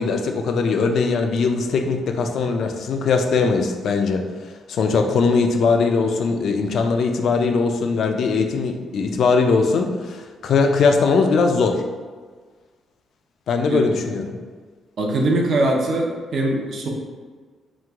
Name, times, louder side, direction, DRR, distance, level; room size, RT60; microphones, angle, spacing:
voice 1, 0.0-4.3 4.7-11.8 13.5-14.4, left 4 dB, 65° left, 5 dB, 0.4 m, -20 dB
voice 2, 15.0-16.9, right 2 dB, 55° right, 0 dB, 0.6 m, -21 dB
3.0 x 2.1 x 3.4 m, 1.5 s
cardioid pair, 90°, 0 cm